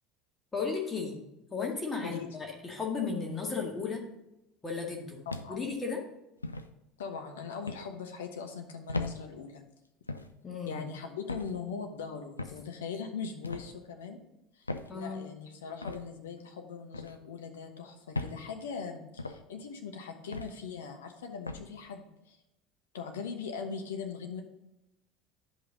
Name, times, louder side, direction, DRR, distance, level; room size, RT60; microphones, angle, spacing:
voice 1, 0.5-1.2 1.5-4.0 4.6-6.0 10.4-10.9 14.9-15.2, left 5 dB, 20° left, 0 dB, 1.8 m, -35 dB
voice 2, 2.0-2.4 5.3-5.6 7.0-9.6 10.7-14.2 14.5-22.4 22.9-24.4, left 6 dB, 70° left, 5 dB, 0.9 m, -40 dB
sound 1, 5.3-5.7 6.4-6.7 7.7-7.9 8.9-9.2 10.1-10.3 11.3-11.5 12.4-12.6 13.4-13.7 14.7-14.9 15.8-16.0 16.9-17.2 18.1-18.4 19.2-19.4 20.3-20.6 21.5-21.7, left 2 dB, 85° left, 0.4 m, -37 dB
10.0 x 5.5 x 3.9 m, 0.91 s
figure-of-eight pair, 70°, 0 cm